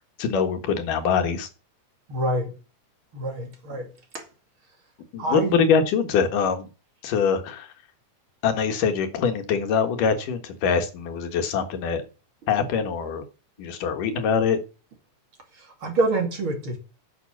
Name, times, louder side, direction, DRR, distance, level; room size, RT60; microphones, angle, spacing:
voice 1, 0.2-1.5 5.1-6.7 7.0-7.7 8.4-12.0 12.5-13.2 13.6-14.6, left 6 dB, 90° left, 3.1 m, -23 dB
voice 2, 2.1-2.5 3.1-4.3 5.2-5.6 15.5-16.8, right 2 dB, 45° right, 2.8 m, -27 dB
9.9 x 6.3 x 7.1 m
omnidirectional pair, 3.6 m